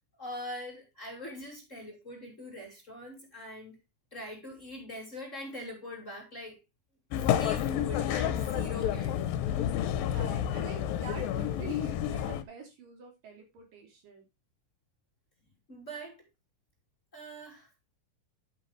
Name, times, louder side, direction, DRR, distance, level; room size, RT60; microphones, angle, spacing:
voice 1, 0.2-3.8 4.1-6.6 7.3-9.1 15.7-16.3 17.1-17.7, equal, 20° left, 3.1 m, -42 dB
sound 1, 7.1-12.4, left 10 dB, 75° left, 2.5 m, -30 dB
voice 2, 10.0-14.3, right 4 dB, 65° right, 4.8 m, -46 dB
11.0 x 8.7 x 3.2 m
omnidirectional pair, 4.1 m